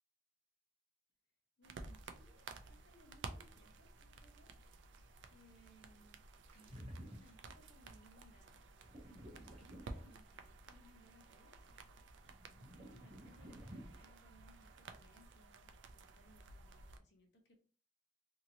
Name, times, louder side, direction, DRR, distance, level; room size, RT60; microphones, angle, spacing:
voice 1, 1.6-4.5 5.3-6.3 6.5-11.7 12.0-17.6, equal, 70° left, 2 dB, 0.8 m, -67 dB
sound 1, 1.6-17.0, right 3 dB, 85° right, 0.4 m, -54 dB
sound 2, 6.5-7.6 8.8-10.5 12.2-14.1, equal, 35° right, 0.7 m, -53 dB
2.9 x 2.8 x 2.7 m, 0.40 s
head